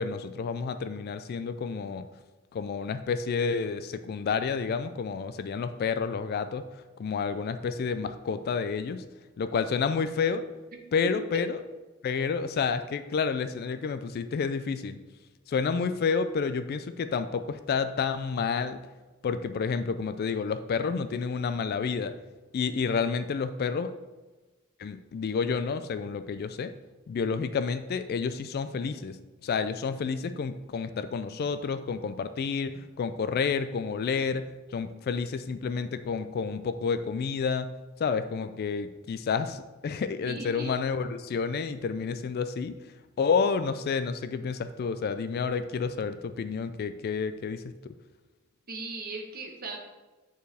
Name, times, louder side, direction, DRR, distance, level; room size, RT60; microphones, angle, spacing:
voice 1, 0.0-2.1 2.5-6.7 7.0-9.0 9.4-10.4 10.9-11.6 12.0-15.0 15.5-18.8 19.2-22.1 22.5-23.9 24.8-26.7 27.1-37.7 38.0-42.8 43.2-47.6, left 5 dB, 45° left, 11 dB, 0.3 m, -30 dB
voice 2, 40.2-40.8 48.7-49.8, right 3 dB, 45° right, 2 dB, 1.1 m, -38 dB
8.9 x 4.5 x 3.4 m, 1.2 s
head